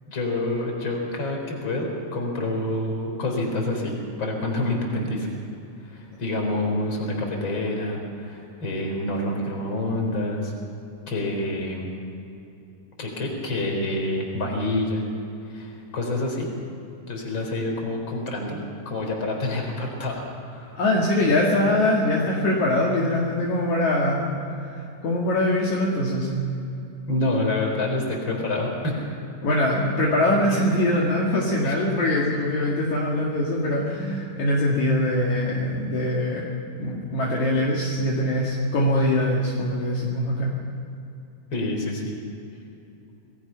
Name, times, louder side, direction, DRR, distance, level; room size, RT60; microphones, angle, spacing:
voice 1, 0.1-5.3 5.8-10.5 11.1-11.9 13.0-15.0 15.5-16.5 17.1-18.6 18.9-20.8 27.1-29.1 31.6-31.7 41.5-42.2, left 1 dB, 35° left, 1 dB, 4.6 m, -27 dB
voice 2, 20.7-24.3 24.7-26.3 29.4-36.5 36.8-40.5, left 1 dB, 60° left, -4 dB, 3.4 m, -23 dB
28.0 x 20.0 x 5.7 m, 2.8 s
omnidirectional pair, 4.0 m